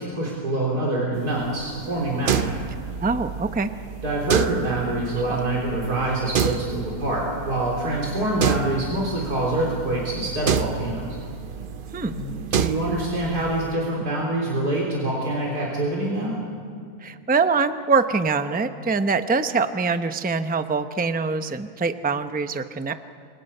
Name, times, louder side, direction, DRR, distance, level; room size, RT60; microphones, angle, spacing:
voice 1, 0.0-2.6 4.0-11.2 12.1-16.4, right 1 dB, 80° right, -3 dB, 4.3 m, -25 dB
sound 1, 1.1-13.8, right 7 dB, 55° right, 0.6 m, -30 dB
voice 2, 3.0-3.7 5.3-5.4 11.9-12.1 17.0-22.9, right 4 dB, 10° right, 9 dB, 0.4 m, -24 dB
29.5 x 26.0 x 5.6 m, 2.3 s
omnidirectional pair, 1.7 m